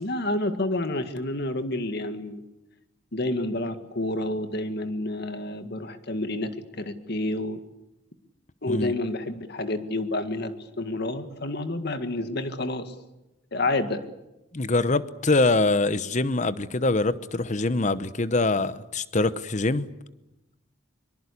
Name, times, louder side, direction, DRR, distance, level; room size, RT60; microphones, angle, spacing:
voice 1, 0.0-2.4 3.1-6.5 6.8-7.6 8.6-12.9 13.5-14.0, left 2 dB, 55° left, 1.9 m, -29 dB
voice 2, 14.5-19.9, left 2 dB, 35° left, 0.9 m, -24 dB
23.5 x 23.5 x 8.4 m
head